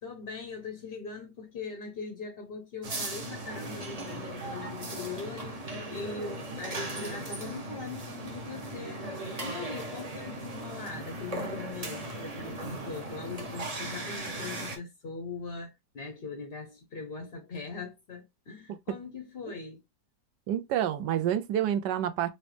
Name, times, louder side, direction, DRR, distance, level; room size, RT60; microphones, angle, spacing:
voice 1, 0.0-5.6 5.9-9.1 9.4-19.8, left 4 dB, 55° left, 0.6 m, -41 dB
sound 1, 2.8-14.8, right 2 dB, 35° right, 0.6 m, -38 dB
voice 2, 20.5-22.3, right 10 dB, 80° right, 1.2 m, -28 dB
4.0 x 2.8 x 3.2 m
omnidirectional pair, 1.9 m